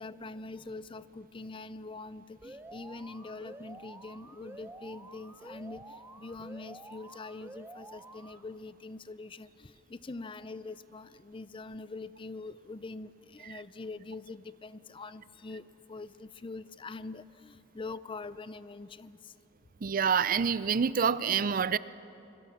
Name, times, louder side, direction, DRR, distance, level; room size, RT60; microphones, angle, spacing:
voice 1, 0.0-19.3, left 3 dB, 25° left, 15 dB, 0.5 m, -44 dB
Alarm, 2.4-8.4, right 2 dB, 10° right, 0.8 m, -49 dB
voice 2, 19.8-21.8, right 6 dB, 45° right, 17 dB, 0.5 m, -27 dB
26.5 x 22.0 x 7.1 m, 2.9 s
head